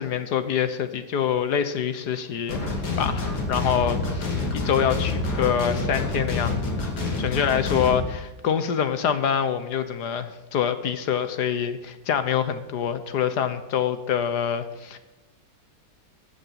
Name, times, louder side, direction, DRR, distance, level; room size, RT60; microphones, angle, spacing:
voice 1, 0.0-2.6 3.0-4.2 4.5-6.9 7.2-15.0, left 8 dB, 65° left, 11 dB, 1.4 m, -25 dB
sound 1, 2.5-8.0, left 3 dB, 80° left, 3.3 m, -27 dB
15.0 x 8.6 x 5.8 m, 1.1 s
omnidirectional pair, 2.1 m